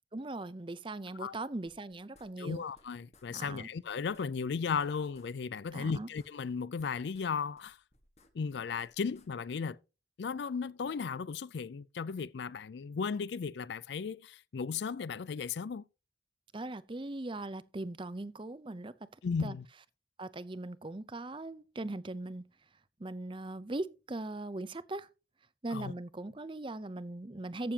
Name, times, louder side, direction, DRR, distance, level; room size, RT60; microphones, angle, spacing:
voice 1, 0.1-2.6 3.3-3.7 5.7-6.1 16.5-18.9 19.4-19.6 20.2-22.4 23.0-25.1 25.6-27.7, right 2 dB, 25° right, 0.6 m, -39 dB
sound 1, 1.7-2.9 3.1-3.3 3.5-3.6 3.9-5.3 5.6-7.3 7.6-9.3, left 2 dB, 35° left, 1.4 m, -65 dB
voice 2, 2.4-7.8 8.3-9.8 10.2-15.8 19.2-19.7 25.7-25.9, left 5 dB, 65° left, 0.4 m, -35 dB
14.5 x 7.0 x 2.8 m
head